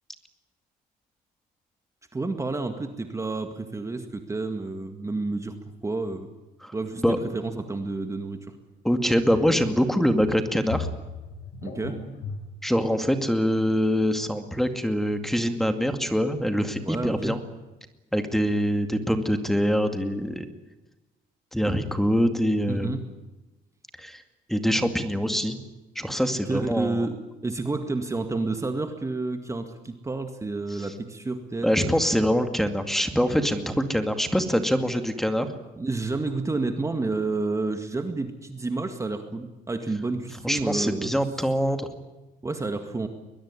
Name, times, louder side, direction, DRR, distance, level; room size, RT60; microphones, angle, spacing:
voice 1, 2.1-5.6 5.8-6.3 6.7-8.5 11.6-12.0 16.8-17.4 22.7-23.0 26.4-27.1 27.4-31.9 35.8-41.2 42.4-43.1, right 3 dB, 15° right, 7 dB, 2.0 m, -30 dB
sound 1, 7.0-7.1 9.3-9.6 9.9-12.4, left 4 dB, 80° left, 7.8 m, -36 dB
voice 2, 8.8-10.9 12.6-17.4 18.1-20.4 21.5-22.9 24.0-24.2 24.5-25.6 26.0-27.1 30.7-30.9 31.6-35.5 40.4-41.9, equal, ahead, 7 dB, 2.4 m, -24 dB
22.0 x 21.5 x 9.9 m, 1.1 s
cardioid pair, 110°, 17 cm